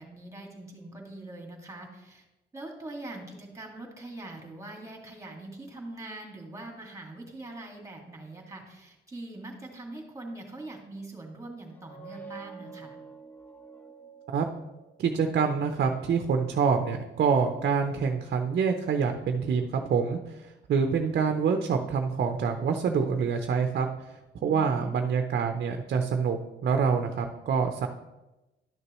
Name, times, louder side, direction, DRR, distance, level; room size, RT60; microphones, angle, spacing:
voice 1, 0.0-2.3 2.5-13.0 24.4-25.0, right 2 dB, 15° right, 1 dB, 2.1 m, -43 dB
sound 1, 11.6-15.2, right 5 dB, 10° left, 0.8 m, -48 dB
voice 2, 15.0-27.9, right 6 dB, 55° right, 5 dB, 0.7 m, -26 dB
11.5 x 6.5 x 3.1 m, 1.0 s
cardioid pair, 90°, 20 cm